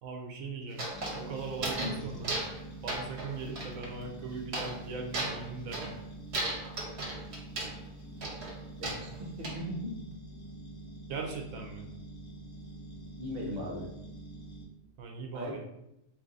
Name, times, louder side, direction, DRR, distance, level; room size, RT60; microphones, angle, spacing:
voice 1, 0.0-0.9 1.1-2.4 2.8-5.9 11.1-11.9 15.0-15.6, right 4 dB, 90° right, 2 dB, 1.0 m, -39 dB
sound 1, 0.7-2.0 2.2-2.6 2.9-3.9 4.5-4.8 5.1-6.0 6.3-7.8 8.2-9.6, right 2 dB, 60° right, 1.0 m, -36 dB
sound 2, 0.9-14.6, right 2 dB, 35° left, 0.4 m, -46 dB
voice 2, 8.8-9.1 9.4-10.0 13.2-13.9 15.3-15.6, left 1 dB, 40° right, -2 dB, 0.6 m, -37 dB
2.6 x 2.6 x 3.7 m, 0.84 s
omnidirectional pair, 1.4 m